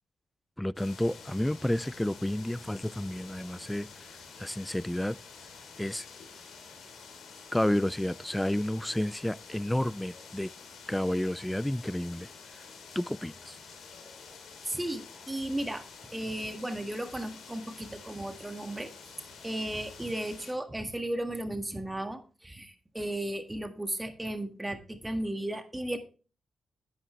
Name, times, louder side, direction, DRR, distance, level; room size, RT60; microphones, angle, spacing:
voice 1, 0.6-4.1 4.4-5.2 5.8-6.1 7.5-10.5 10.9-12.3 13.0-13.6, left 1 dB, 10° left, 0.4 m, -31 dB
sound 1, 0.8-20.5, left 5 dB, 80° left, 2.9 m, -49 dB
voice 2, 14.7-15.8 16.1-18.9 19.4-26.0, right 1 dB, 15° right, 1.8 m, -35 dB
10.0 x 10.0 x 3.2 m
cardioid pair, 60°, 0 cm